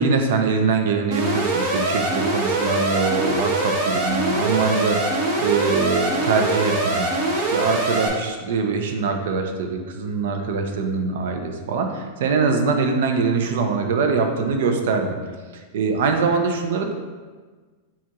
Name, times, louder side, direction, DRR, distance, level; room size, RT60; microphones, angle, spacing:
voice 1, 0.0-7.1 7.3-15.2 15.7-16.9, right 4 dB, 70° right, 5 dB, 0.6 m, -23 dB
Alarm, 1.1-8.1, right 2 dB, 45° right, 0.9 m, -23 dB
7.1 x 2.4 x 3.0 m, 1.4 s
supercardioid pair, 165°, 0 cm